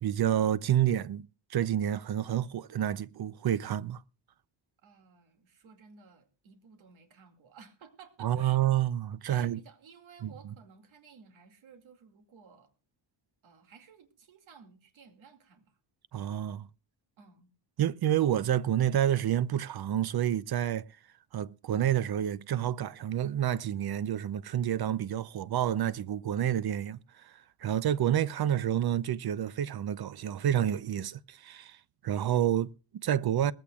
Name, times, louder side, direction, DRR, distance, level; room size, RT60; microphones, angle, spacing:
voice 1, 0.0-4.0 8.2-9.6 10.2-10.3 16.1-16.7 17.8-20.9 21.3-27.3 27.6-31.8 32.0-33.5, right 11 dB, 55° right, 0.6 m, -29 dB
voice 2, 4.8-8.6 9.3-12.7 13.4-15.8 17.2-17.5, right 6 dB, 80° right, 2.4 m, -55 dB
20.0 x 15.5 x 2.3 m
wide cardioid pair, 135°, 47 cm